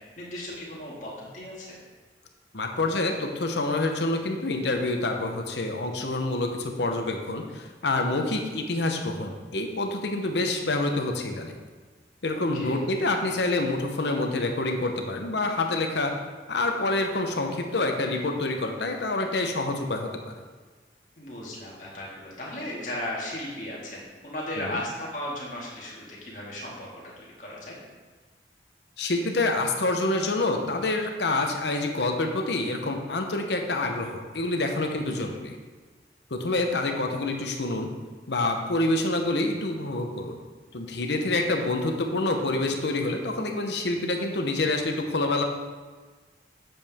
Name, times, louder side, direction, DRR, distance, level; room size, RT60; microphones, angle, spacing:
voice 1, 0.2-1.8 12.3-12.8 21.2-26.9 27.2-27.8 35.2-35.3, left 1 dB, 45° left, -5 dB, 2.1 m, -36 dB
voice 2, 2.5-11.6 12.2-16.1 16.5-20.3 24.6-24.8 29.0-35.5 36.3-37.9 38.3-40.4 40.7-45.4, left 2 dB, 70° left, 4 dB, 0.9 m, -27 dB
8.1 x 7.2 x 3.6 m, 1.4 s
head